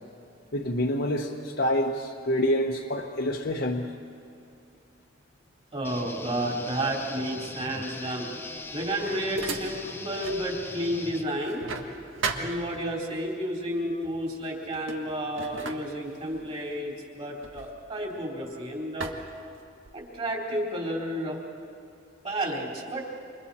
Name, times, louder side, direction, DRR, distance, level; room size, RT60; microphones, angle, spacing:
voice 1, 0.5-3.9, equal, 55° left, -1 dB, 1.1 m, -27 dB
voice 2, 5.7-8.3 8.7-11.7 12.3-19.1 19.9-21.4 22.2-23.1, right 1 dB, 35° right, -2 dB, 3.9 m, -31 dB
sound 1, 5.8-11.2, left 2 dB, 10° left, 0.7 m, -40 dB
sound 2, 8.5-10.5 10.8-13.2 14.0-14.3 14.6-18.5 19.0-20.1, right 4 dB, 85° right, 1.6 m, -38 dB
29.0 x 26.5 x 4.3 m, 2.4 s
head